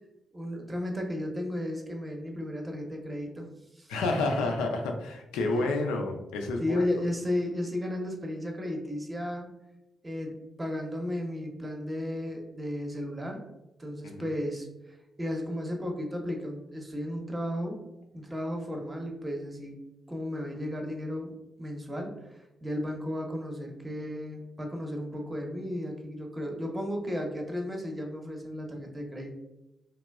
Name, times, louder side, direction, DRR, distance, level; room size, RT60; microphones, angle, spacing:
voice 1, 0.3-3.5 3.7-4.2 5.5-5.7 6.6-9.5 10.0-13.5 13.8-17.8 18.1-29.3, left 1 dB, 25° right, 2 dB, 0.7 m, -34 dB
voice 2, 3.9-6.9 14.0-14.3, left 2 dB, 90° left, 3 dB, 0.3 m, -29 dB
2.9 x 2.2 x 2.2 m, 0.96 s
supercardioid pair, 45°, 0 cm